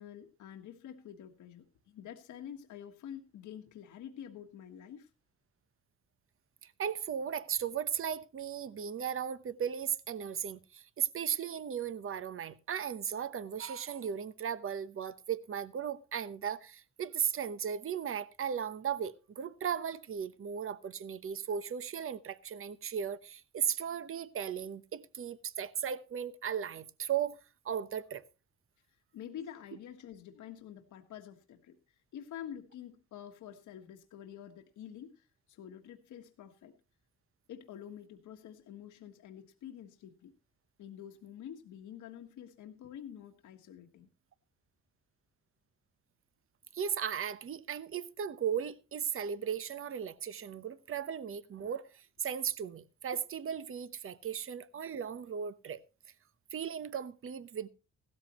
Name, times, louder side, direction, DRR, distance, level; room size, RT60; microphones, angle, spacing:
voice 1, 0.0-5.1 28.9-36.7 37.5-40.3 40.8-44.1, left 9 dB, 75° left, 1.5 m, -48 dB
voice 2, 6.8-27.4 27.6-28.2 46.7-51.9 52.2-55.8 56.5-57.7, right 8 dB, 45° right, 1.0 m, -36 dB
16.0 x 13.0 x 3.1 m
cardioid pair, 90°, 30 cm